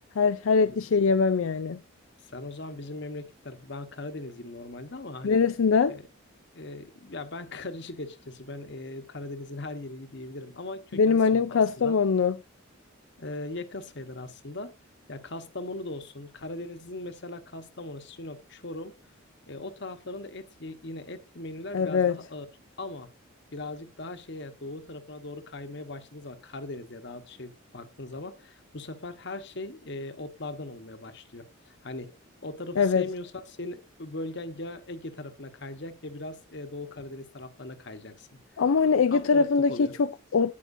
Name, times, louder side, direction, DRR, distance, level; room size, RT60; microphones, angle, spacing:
voice 1, 0.2-1.8 5.2-6.0 10.9-12.4 21.7-22.2 32.8-33.0 38.6-40.5, left 5 dB, 70° left, 0.4 m, -22 dB
voice 2, 2.3-5.4 5.9-6.1 6.5-12.0 13.2-14.7 15.1-19.0 19.5-22.5 22.8-23.1 23.5-32.1 32.4-38.3 38.8-39.9, left 2 dB, 55° left, 1.2 m, -39 dB
17.0 x 5.9 x 2.7 m
head